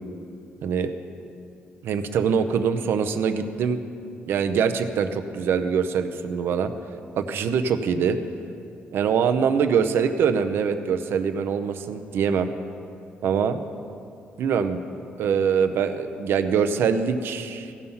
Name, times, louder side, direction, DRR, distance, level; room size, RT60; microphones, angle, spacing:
voice 1, 1.8-3.8 4.3-6.7 7.1-8.2 8.9-12.5 13.2-13.6 14.4-14.8 15.2-17.7, right 6 dB, 70° right, 9 dB, 0.6 m, -23 dB
16.0 x 5.7 x 5.5 m, 2.6 s
cardioid pair, 125°, 4 cm